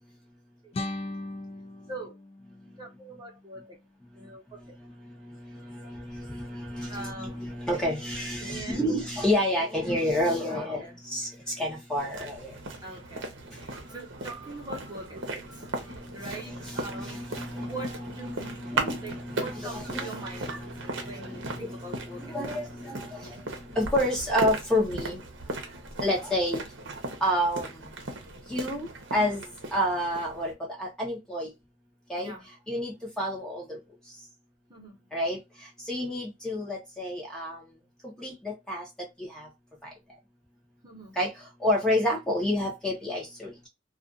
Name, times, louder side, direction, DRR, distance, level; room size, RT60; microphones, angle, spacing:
sound 1, 0.7-3.7, left 2 dB, 30° left, 0.3 m, -39 dB
voice 1, 2.8-3.8 4.1-4.8 6.9-7.4 8.4-9.0 10.5-11.0 11.9-12.1 12.8-17.2 17.5-20.7 21.0-22.4 32.2-32.5 34.7-35.0 40.8-41.2, right 2 dB, 20° right, 0.9 m, -43 dB
voice 2, 5.2-12.5 16.2-25.2 26.0-26.6 27.2-27.7 28.5-29.4 29.7-30.5 30.8-31.5 32.1-32.3 32.7-33.8 35.1-35.4 35.9-37.6 38.2-38.8 39.2-39.5 41.2-41.3 41.6-43.7, left 1 dB, 5° left, 0.8 m, -30 dB
sound 2, 12.0-30.5, right 2 dB, 70° right, 0.8 m, -37 dB
2.4 x 2.4 x 2.4 m
head